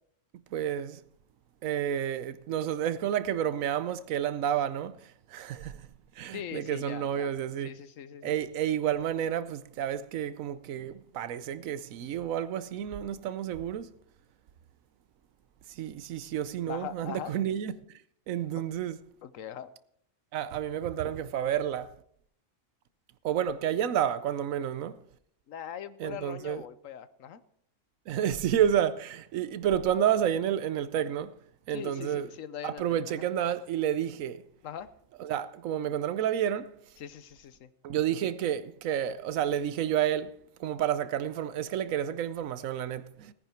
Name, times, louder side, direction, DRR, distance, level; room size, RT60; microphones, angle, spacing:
voice 1, 0.5-1.0 1.6-5.9 6.2-7.8 8.2-13.9 15.7-17.8 18.3-19.0 20.3-21.9 23.2-25.0 26.0-26.6 28.1-31.4 31.7-32.3 32.6-34.4 35.2-36.8 37.8-40.3 40.6-43.3, right 10 dB, 90° right, 1.1 m, -30 dB
voice 2, 6.3-7.3 7.6-8.3 16.6-17.3 18.5-18.6 19.2-19.7 25.5-27.4 31.7-33.3 34.6-34.9 37.0-37.7, left 9 dB, 80° left, 1.2 m, -41 dB
17.5 x 9.8 x 4.5 m
omnidirectional pair, 1.4 m